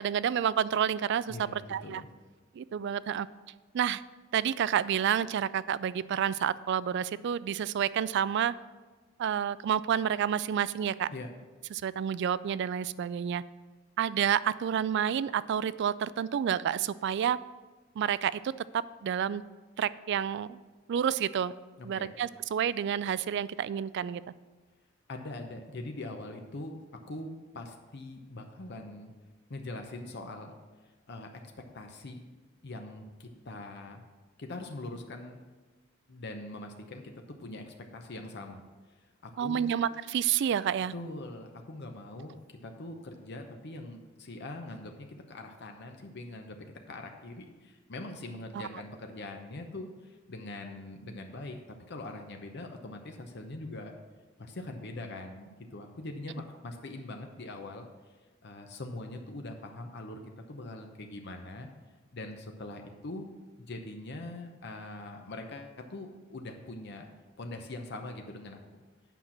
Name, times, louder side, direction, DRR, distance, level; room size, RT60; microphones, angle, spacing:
voice 1, 0.0-2.0 2.6-3.3 3.7-4.0 4.3-8.5 9.2-11.1 11.7-13.4 14.0-17.4 18.0-18.4 18.7-19.4 19.8-20.6 20.9-21.5 21.8-24.2 39.4-40.9 48.5-48.7, right 9 dB, 60° right, 18 dB, 0.3 m, -29 dB
voice 2, 1.3-2.1 11.1-11.3 21.8-22.1 25.1-29.1 29.5-30.6 31.1-32.2 32.6-34.0 34.4-35.4 36.1-38.6 39.2-39.7 40.9-53.9 54.4-57.9 58.4-60.2 60.5-61.7 62.1-63.3 63.6-67.1 67.4-68.6, left 2 dB, 55° left, 4 dB, 0.8 m, -42 dB
9.1 x 5.8 x 6.0 m, 1.3 s
head